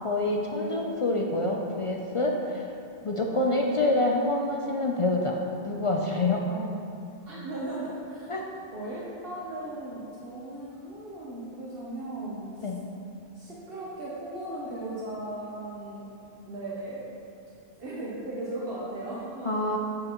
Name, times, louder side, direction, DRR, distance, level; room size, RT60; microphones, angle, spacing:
voice 1, 0.0-2.7 3.0-5.4 5.6-6.4 8.3-8.5 12.6-12.8 19.4-19.8, left 2 dB, 45° left, 0 dB, 0.4 m, -26 dB
voice 2, 6.4-6.9 7.2-8.3 8.7-12.7 13.3-16.1 16.5-17.0 17.8-19.6, right 1 dB, 65° right, -6 dB, 1.1 m, -37 dB
7.4 x 7.4 x 3.0 m, 2.6 s
omnidirectional pair, 1.0 m